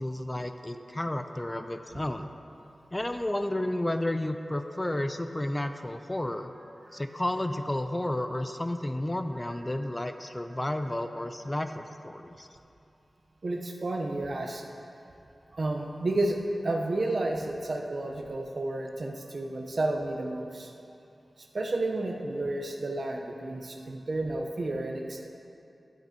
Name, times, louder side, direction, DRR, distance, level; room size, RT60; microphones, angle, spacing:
voice 1, 0.0-2.3 2.9-6.5 6.9-12.5, left 1 dB, 25° left, 8 dB, 0.5 m, -32 dB
voice 2, 13.4-14.6 15.5-20.7 21.5-25.3, right 2 dB, 65° right, 2 dB, 0.8 m, -31 dB
12.0 x 9.0 x 2.9 m, 2.7 s
cardioid pair, 40°, 0 cm